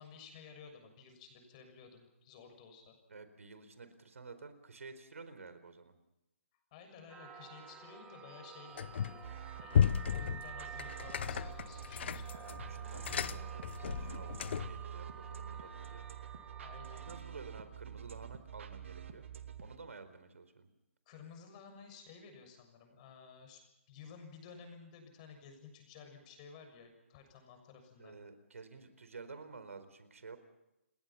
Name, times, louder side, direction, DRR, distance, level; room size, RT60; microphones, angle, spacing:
voice 1, 0.0-2.9 6.7-8.9 9.6-12.3 15.1-15.2 16.6-17.1 21.0-23.6 23.9-28.2, left 6 dB, 30° left, 6 dB, 6.8 m, -54 dB
voice 2, 3.1-5.9 12.3-16.0 16.9-19.3 19.6-20.7 28.0-30.4, right 4 dB, 80° right, 10 dB, 4.4 m, -51 dB
sound 1, 7.1-17.2, right 6 dB, 10° right, 4.2 m, -51 dB
sound 2, 8.8-9.3 9.7-14.8, left 8 dB, 55° left, 0.8 m, -34 dB
sound 3, 9.2-19.8, right 9 dB, 60° right, 2.6 m, -47 dB
30.0 x 21.0 x 5.8 m, 0.90 s
hypercardioid pair, 150°, 7 cm